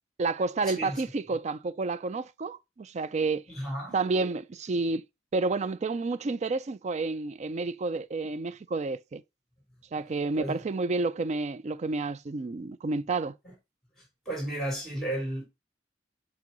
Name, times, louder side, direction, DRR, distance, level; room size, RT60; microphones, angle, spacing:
voice 1, 0.2-3.5 3.9-5.0 5.3-9.2 9.9-13.4, right 3 dB, 40° right, 0.4 m, -30 dB
voice 2, 3.5-4.0 10.4-10.6 13.4-13.5 14.3-15.4, right 1 dB, ahead, 3.9 m, -33 dB
7.6 x 2.9 x 5.3 m
head